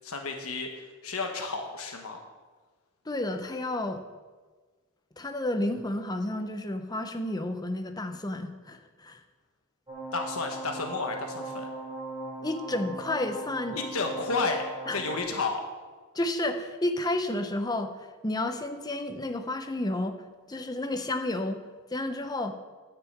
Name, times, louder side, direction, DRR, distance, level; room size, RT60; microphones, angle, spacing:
voice 1, 0.0-2.2 10.1-11.7 13.7-15.7, left 3 dB, 85° left, 3 dB, 1.3 m, -32 dB
voice 2, 3.1-4.0 5.2-9.2 12.4-13.8 14.9-15.0 16.1-17.9 18.2-20.1 20.5-21.6 21.9-22.5, left 1 dB, 20° left, 6 dB, 0.7 m, -31 dB
sound 1, 9.9-15.2, right 2 dB, 20° right, 3.0 m, -39 dB
10.0 x 6.0 x 8.0 m, 1.4 s
head